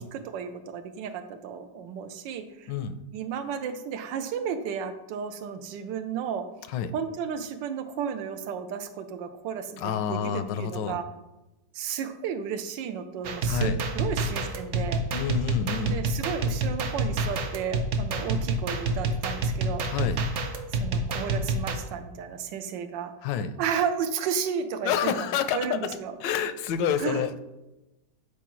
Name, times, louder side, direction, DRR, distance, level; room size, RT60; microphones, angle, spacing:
voice 1, 0.0-2.7 3.1-6.5 6.9-11.1 11.7-15.0 15.7-19.9 20.7-23.1 23.6-26.2 27.0-27.2, right 7 dB, 85° right, 9 dB, 1.3 m, -33 dB
voice 2, 9.8-11.0 13.5-13.8 15.1-16.0 19.9-20.2 23.2-23.5 24.8-25.8 26.2-27.3, left 8 dB, 85° left, 11 dB, 1.2 m, -28 dB
sound 1, 13.2-21.7, right 2 dB, 65° right, 0.7 m, -28 dB
8.4 x 4.6 x 3.0 m, 1.0 s
omnidirectional pair, 1.9 m